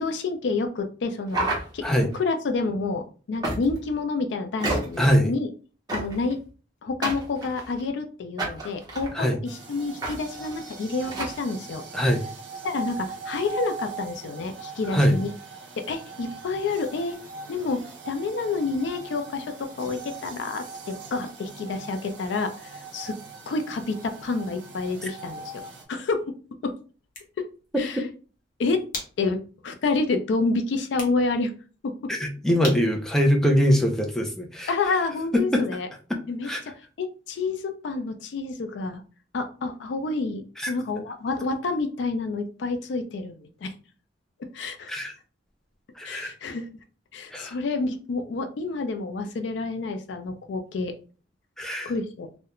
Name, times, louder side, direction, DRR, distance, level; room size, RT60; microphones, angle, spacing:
voice 1, 0.0-1.5 1.7-5.5 5.9-6.4 6.8-11.8 12.6-15.3 15.8-17.2 17.5-23.1 23.5-25.6 25.9-26.4 26.6-26.7 27.4-27.5 27.8-28.0 28.6-28.8 29.2-29.4 29.6-31.5 32.0-32.1 34.7-35.9 36.3-36.7 37.0-39.0 39.3-43.7 44.5-44.9 46.0-46.7 47.1-50.9 51.9-52.3, left 3 dB, 70° left, 7 dB, 0.4 m, -29 dB
sound 1, 1.3-2.2 3.4-3.9 4.6-5.1 5.9-6.3 7.0-7.8 8.4-9.1 10.0-10.1 10.4-10.5 11.1-11.4, right 2 dB, 20° right, 0.7 m, -30 dB
voice 2, 5.0-5.3 9.1-9.4 11.9-12.2 14.9-15.2 32.1-34.7 35.5-35.6 36.4-36.6 40.6-40.7 44.9-45.1 46.0-46.3 47.3-47.5 51.6-51.9, equal, 5° left, 1 dB, 0.4 m, -22 dB
sound 2, 9.4-25.8, right 4 dB, 70° right, 0.5 m, -40 dB
sound 3, 26.9-34.3, left 3 dB, 50° left, 0.7 m, -43 dB
2.3 x 2.1 x 2.9 m, 0.38 s
head